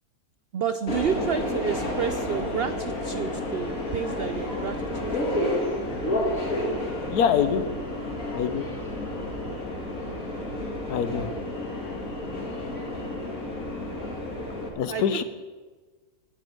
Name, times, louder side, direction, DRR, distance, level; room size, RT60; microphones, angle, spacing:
voice 1, 0.5-5.5 9.9-10.5 13.3-13.5 14.0-14.4 14.9-15.2, right 8 dB, 90° right, 10 dB, 0.5 m, -31 dB
Subway metro underground, 0.9-14.7, left 1 dB, 60° left, 2.5 m, -30 dB
voice 2, 7.1-7.6 8.3-8.6 10.9-11.3 14.8-15.2, left 8 dB, 80° left, 11 dB, 1.4 m, -24 dB
11.0 x 9.8 x 7.8 m, 1.4 s
omnidirectional pair, 1.7 m